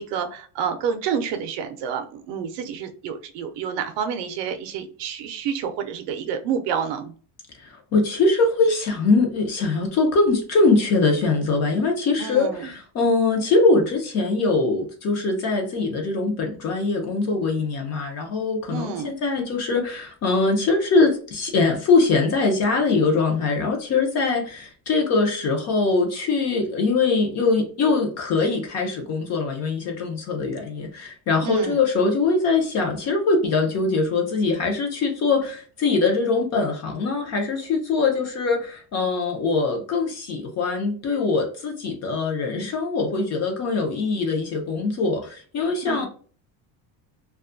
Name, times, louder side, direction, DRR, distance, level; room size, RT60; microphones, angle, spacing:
voice 1, 0.0-7.1 12.2-12.7 18.7-19.1 31.4-31.8 45.9-46.1, right 7 dB, 65° right, 8 dB, 0.5 m, -29 dB
voice 2, 7.6-46.1, left 3 dB, 35° left, 3 dB, 0.5 m, -22 dB
2.5 x 2.3 x 2.5 m, 0.41 s
cardioid pair, 175°, 46 cm